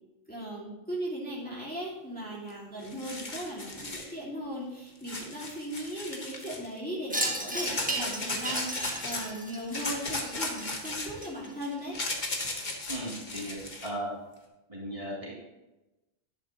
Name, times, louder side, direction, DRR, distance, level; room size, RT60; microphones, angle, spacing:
voice 1, 0.3-12.0, equal, 10° left, -6 dB, 2.2 m, -38 dB
sound 1, 2.5-2.6 2.8-4.1 5.0-6.7 7.6-9.3 9.7-13.9, left 2 dB, 45° left, 1.5 m, -36 dB
Wind chime, 7.1-11.7, right 1 dB, 10° right, 1.4 m, -35 dB
voice 2, 12.9-13.6 13.8-14.1 14.7-15.3, right 1 dB, 30° right, -6 dB, 3.0 m, -36 dB
11.0 x 9.8 x 3.0 m, 1.0 s
omnidirectional pair, 1.1 m